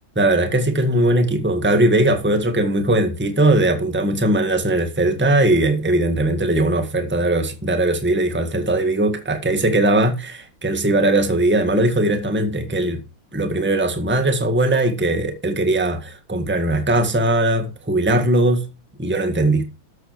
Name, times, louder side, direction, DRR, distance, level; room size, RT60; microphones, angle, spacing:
voice 1, 0.1-13.0 13.3-18.7 19.0-19.6, right 1 dB, 5° right, 1.6 m, -19 dB
13.0 x 7.9 x 4.7 m
omnidirectional pair, 2.2 m